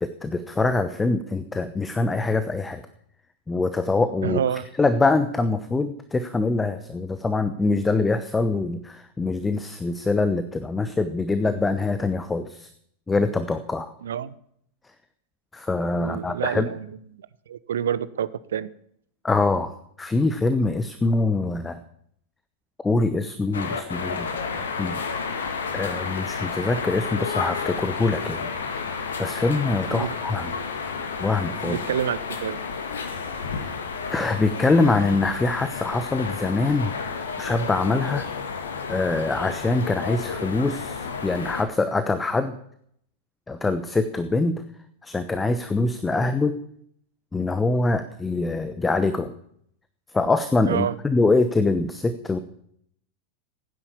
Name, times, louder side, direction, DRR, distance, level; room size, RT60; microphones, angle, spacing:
voice 1, 0.0-2.8 3.5-4.4 4.8-12.7 13.1-13.9 15.5-16.7 19.2-19.7 20.0-21.8 22.8-25.0 25.7-28.5 29.2-30.5 31.2-31.8 33.6-33.7 34.1-36.9 37.4-38.2 38.9-42.6 43.5-44.6 45.0-46.6 47.3-49.3 50.1-52.4, left 3 dB, 10° left, 11 dB, 1.0 m, -24 dB
voice 2, 4.2-4.7 14.0-14.3 16.0-16.9 17.1-18.7 29.9-30.1 31.6-32.6 50.7-51.0, right 9 dB, 65° right, 17 dB, 0.8 m, -28 dB
sound 1, 23.5-41.6, left 5 dB, 65° left, 2.2 m, -31 dB
16.0 x 10.0 x 7.1 m, 0.69 s
figure-of-eight pair, 90°, 0 cm